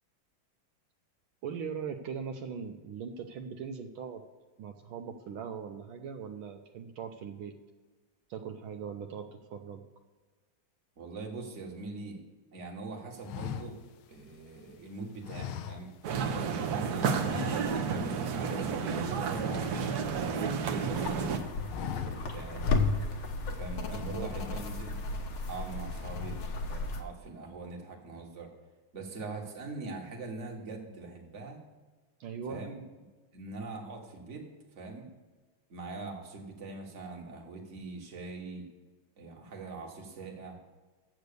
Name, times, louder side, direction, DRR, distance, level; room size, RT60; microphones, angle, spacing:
voice 1, 1.4-4.2 4.6-7.6 8.3-9.8 16.6-16.9 23.9-24.3 32.2-32.6, right 7 dB, 80° right, 5 dB, 1.5 m, -40 dB
voice 2, 11.0-12.2 12.5-13.8 14.1-15.9 16.6-22.7 23.4-25.0 25.5-28.5 28.9-31.6 32.5-32.9 33.3-35.1 35.7-38.7 39.2-40.6, right 3 dB, 35° right, 1 dB, 1.7 m, -43 dB
sound 1, 13.2-14.7 15.2-16.3 16.6-16.8 17.2-18.1 18.3-18.6 18.9-20.6 21.0-21.3 21.6-22.5 22.9-23.0 23.8-24.9 25.4-25.7 26.0-26.6, left 9 dB, 85° left, 1.5 m, -42 dB
sound 2, 16.0-21.4, right 5 dB, 60° right, 1.2 m, -31 dB
sound 3, 20.9-27.0, left 3 dB, 65° left, 1.7 m, -33 dB
10.5 x 7.9 x 6.8 m, 1.3 s
omnidirectional pair, 2.3 m